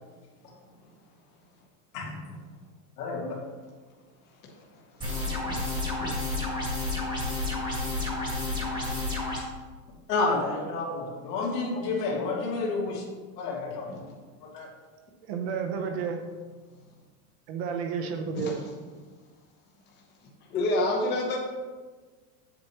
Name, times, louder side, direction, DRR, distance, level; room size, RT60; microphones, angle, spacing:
voice 1, 1.9-2.4 3.0-3.4 10.1-13.1 13.4-14.1 14.4-14.7, left 3 dB, 75° left, -2 dB, 2.5 m, -30 dB
voice 2, 5.0-5.5 6.0-6.2 8.1-8.2 8.5-8.8 13.9-14.0 18.4-18.5 20.5-21.4, left 1 dB, 20° left, -2 dB, 1.0 m, -30 dB
sound 1, 5.0-9.4, left 2 dB, 10° right, 1.3 m, -30 dB
voice 3, 15.2-16.2 17.5-18.6, right 6 dB, 40° right, 4 dB, 0.8 m, -31 dB
8.5 x 7.9 x 3.0 m, 1.4 s
supercardioid pair, 175°, 48 cm